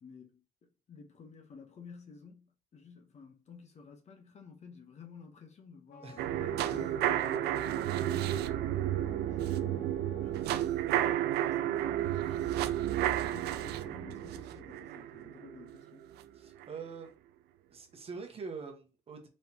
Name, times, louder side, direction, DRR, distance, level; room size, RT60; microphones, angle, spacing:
voice 1, 0.0-8.5 8.8-16.1, left 5 dB, 40° left, 1.1 m, -53 dB
Wind instrument woodwind instrument, 5.9-10.5, left 5 dB, 70° left, 0.8 m, -54 dB
sound 1, 6.2-16.2 16.6-16.7, right 12 dB, 75° right, 0.4 m, -32 dB
voice 2, 16.3-17.1 17.7-19.3, right 5 dB, 35° right, 1.1 m, -44 dB
4.3 x 3.3 x 2.9 m
cardioid pair, 110°, 17 cm